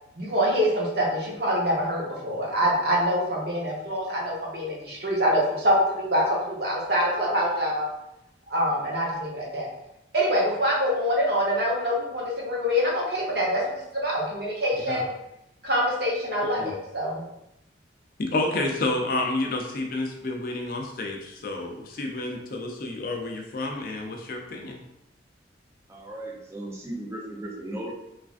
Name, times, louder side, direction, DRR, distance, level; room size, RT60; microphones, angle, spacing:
voice 1, 0.2-7.9 8.5-9.7 10.1-15.1 15.6-17.2, equal, 60° right, -3 dB, 0.8 m, -25 dB
voice 2, 18.2-24.8, left 2 dB, 50° left, 2 dB, 0.4 m, -30 dB
voice 3, 25.9-27.9, right 1 dB, 15° right, -3 dB, 0.4 m, -36 dB
3.1 x 2.4 x 2.4 m, 0.84 s
head